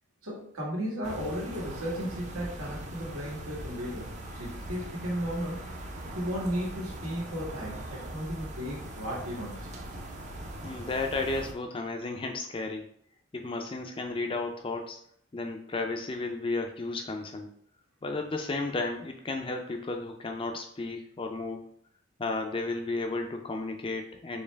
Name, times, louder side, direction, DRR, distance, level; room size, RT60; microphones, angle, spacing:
voice 1, 0.2-5.7 6.1-9.7, equal, 85° right, -4 dB, 1.7 m, -35 dB
sound 1, 1.0-11.5, right 1 dB, 35° right, 0.5 m, -41 dB
voice 2, 10.6-12.9 13.3-15.0 15.3-17.5 18.0-21.6 22.2-24.4, left 3 dB, 25° left, 3 dB, 0.4 m, -33 dB
4.3 x 3.2 x 3.4 m, 0.66 s
head